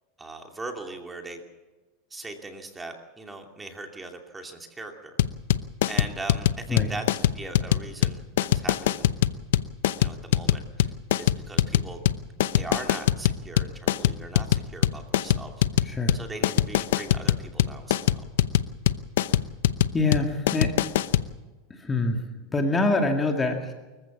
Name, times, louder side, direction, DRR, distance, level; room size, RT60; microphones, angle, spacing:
voice 1, 0.2-1.4 2.1-5.2 5.9-7.0 7.3-9.1 10.0-10.9 11.2-12.0 12.5-18.2, right 2 dB, 10° right, 4 dB, 2.6 m, -40 dB
sound 1, 5.2-21.3, left 12 dB, 80° left, 0.8 m, -23 dB
voice 2, 15.8-16.2 19.9-20.7 21.8-22.2 22.5-23.7, left 2 dB, 15° left, 3 dB, 2.1 m, -25 dB
25.0 x 15.0 x 7.3 m, 1.2 s
supercardioid pair, 130°, 0 cm